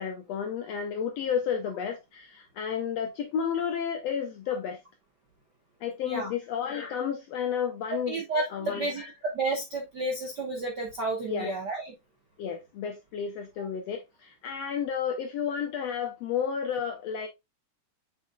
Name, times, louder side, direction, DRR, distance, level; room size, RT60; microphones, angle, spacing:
voice 1, 0.0-4.8 5.8-8.2 8.5-9.1 11.3-11.5 12.4-17.3, left 7 dB, 75° left, 1.5 m, -32 dB
voice 2, 8.1-11.8, right 2 dB, 55° right, 1.2 m, -31 dB
7.2 x 5.9 x 2.3 m
omnidirectional pair, 3.7 m